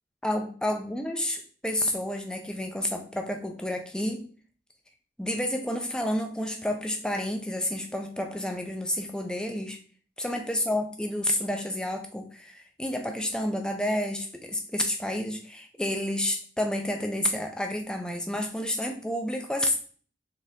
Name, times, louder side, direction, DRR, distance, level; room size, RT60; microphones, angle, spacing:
voice 1, 0.2-4.3 5.2-9.8 10.2-19.8, left 1 dB, 5° left, 4 dB, 0.4 m, -30 dB
4.0 x 3.6 x 2.6 m, 0.43 s
head